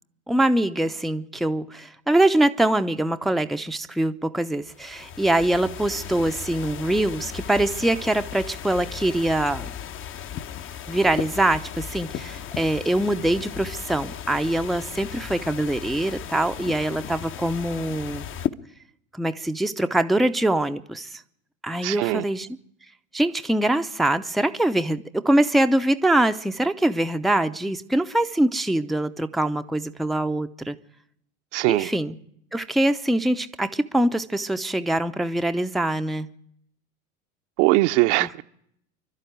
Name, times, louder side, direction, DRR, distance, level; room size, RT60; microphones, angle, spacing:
voice 1, 0.3-9.7 10.9-18.3 19.1-21.2 21.6-22.5 23.1-30.8 31.7-32.2 32.5-36.3 38.2-38.3, right 1 dB, ahead, 0.7 m, -23 dB
sound 1, 4.7-18.5, left 9 dB, 30° left, 1.0 m, -36 dB
voice 2, 21.8-22.2 31.5-31.9 37.6-38.4, right 20 dB, 55° right, 1.0 m, -21 dB
26.5 x 12.0 x 9.3 m
hypercardioid pair, 90°, 41 cm